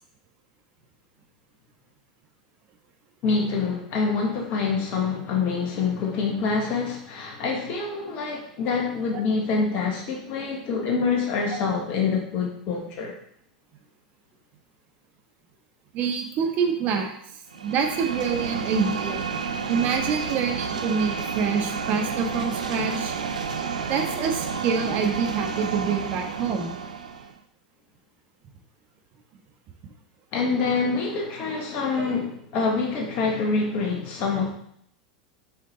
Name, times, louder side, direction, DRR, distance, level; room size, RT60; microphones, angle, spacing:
voice 1, 3.2-13.1 30.3-34.5, left 4 dB, 45° left, 0 dB, 1.5 m, -26 dB
voice 2, 15.9-17.1 17.6-19.3 19.7-23.1 23.9-26.8, right 6 dB, 45° right, 3 dB, 1.4 m, -26 dB
sound 1, 17.5-27.3, right 5 dB, 85° right, 0.6 m, -30 dB
6.9 x 5.0 x 4.2 m, 0.68 s
hypercardioid pair, 90°, 4 cm